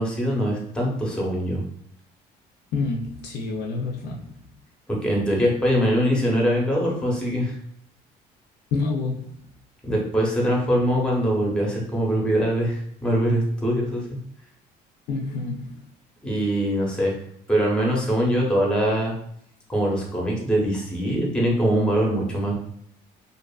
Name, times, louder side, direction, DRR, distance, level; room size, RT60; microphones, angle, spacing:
voice 1, 0.0-1.6 5.0-7.5 9.8-14.2 16.2-17.1 17.5-19.1 19.7-22.5, equal, 5° left, -2 dB, 0.8 m, -23 dB
voice 2, 2.7-4.4 8.7-9.4 15.1-15.8, left 3 dB, 75° left, -1 dB, 0.5 m, -28 dB
2.5 x 2.4 x 2.3 m, 0.68 s
cardioid pair, 110°, 17 cm